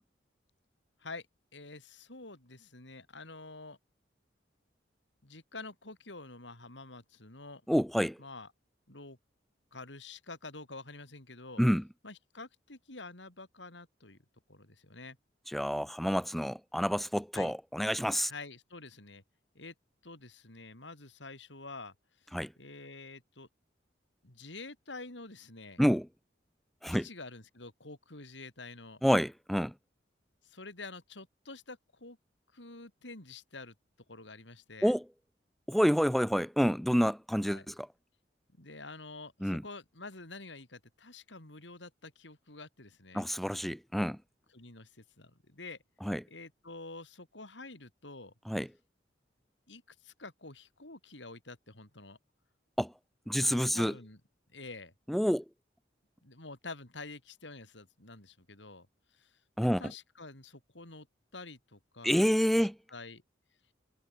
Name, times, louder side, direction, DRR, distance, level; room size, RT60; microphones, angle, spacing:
voice 1, 1.5-3.8 5.2-7.6 8.2-8.5 8.9-9.2 9.7-11.6 12.0-14.2 14.5-15.2 17.3-17.5 18.3-19.2 19.5-19.7 20.0-21.9 22.6-23.5 24.2-25.8 26.9-29.0 30.4-32.2 32.5-33.7 34.1-34.9 37.5-37.7 38.6-43.2 44.5-45.8 46.3-48.3 49.7-52.2 53.4-54.2 54.5-54.9 56.2-58.9 59.1-59.3 59.8-61.1 61.3-62.3 62.6-63.2, left 3 dB, 80° left, 4.8 m, -48 dB
voice 2, 7.7-8.2 11.6-11.8 15.5-18.3 22.3-22.5 25.8-26.1 26.8-27.1 29.0-29.7 34.8-35.0 35.7-37.9 39.4-39.6 43.1-44.2 46.0-46.2 48.5-48.7 52.8-52.9 53.3-53.9 55.1-55.4 59.6-59.8 62.0-62.8, equal, ahead, 0.9 m, -28 dB
head